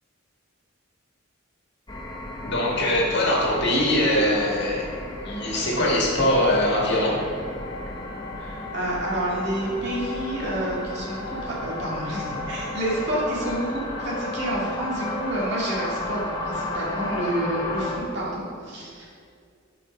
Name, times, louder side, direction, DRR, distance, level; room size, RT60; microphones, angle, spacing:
sound 1, 1.9-18.0, left 1 dB, 20° left, 0.9 m, -33 dB
voice 1, 2.4-4.8 5.3-7.2, left 1 dB, 55° left, -3 dB, 1.8 m, -22 dB
voice 2, 8.4-19.1, right 1 dB, 55° right, -6 dB, 2.3 m, -29 dB
8.8 x 5.3 x 5.2 m, 2.3 s
head